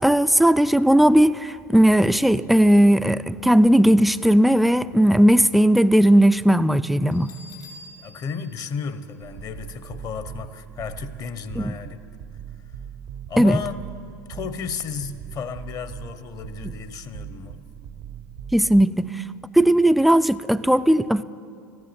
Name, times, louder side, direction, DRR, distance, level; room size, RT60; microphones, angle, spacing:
voice 1, 0.0-7.3 11.6-11.7 13.4-13.6 18.5-19.1 19.5-21.2, right 1 dB, ahead, 0.3 m, -17 dB
Bell, 7.1-9.8, left 2 dB, 75° left, 3.8 m, -47 dB
voice 2, 8.0-12.0 13.3-13.8 14.3-17.6, left 6 dB, 40° left, 0.9 m, -33 dB
sound 1, 9.2-18.8, right 9 dB, 55° right, 0.6 m, -40 dB
14.5 x 11.0 x 7.5 m
hypercardioid pair, 80°, 10 cm